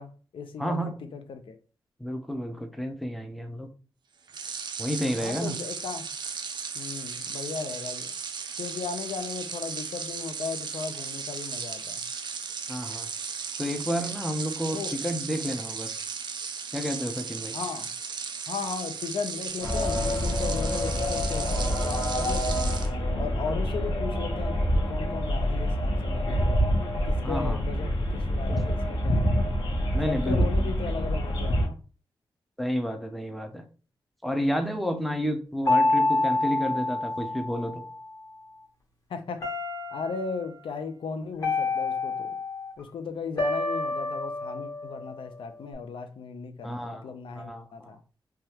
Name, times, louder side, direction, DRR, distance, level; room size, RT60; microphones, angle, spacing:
voice 1, 0.0-1.6 5.2-6.1 6.7-8.1 8.6-12.0 14.7-15.0 17.5-17.9 18.5-22.7 23.2-26.6 27.1-29.5 30.0-31.8 39.1-39.4 39.9-42.4 42.8-48.0, left 5 dB, 80° left, 0.5 m, -36 dB
voice 2, 0.6-0.9 2.0-3.7 4.8-5.6 12.7-13.1 13.6-15.9 16.7-17.5 23.4-23.6 27.2-27.6 28.5-28.6 29.9-30.7 32.6-33.6 34.2-37.8 46.6-48.0, equal, ahead, 0.4 m, -31 dB
sound 1, 4.3-22.9, right 5 dB, 60° right, 0.4 m, -36 dB
sound 2, 19.6-31.7, equal, 60° left, 0.8 m, -26 dB
sound 3, 35.6-38.0 39.4-40.4 41.4-42.7 43.4-45.7, left 2 dB, 40° left, 1.1 m, -28 dB
3.3 x 2.3 x 2.8 m
wide cardioid pair, 145°, 9 cm